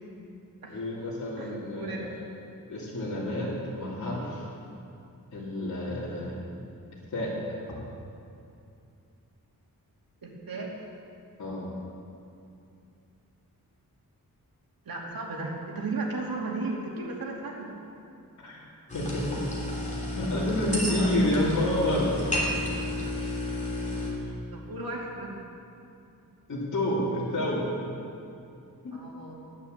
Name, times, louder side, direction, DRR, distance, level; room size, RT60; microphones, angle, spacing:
voice 1, 0.7-2.2 2.7-4.5 5.3-6.4 7.1-7.3 11.4-11.7 18.4-18.6 18.9-19.4 20.0-22.1 26.5-27.7 28.8-29.0, left 1 dB, 55° left, -8 dB, 3.0 m, -29 dB
voice 2, 1.4-2.0 2.3-2.4 10.2-10.7 14.8-17.8 20.8-21.3 23.7-23.9 24.5-25.4 28.9-29.3, right 3 dB, 75° right, -2 dB, 2.8 m, -35 dB
sound 1, 18.9-24.1, left 1 dB, 20° left, 3.3 m, -31 dB
15.0 x 10.5 x 8.1 m, 2.6 s
wide cardioid pair, 160°, 35 cm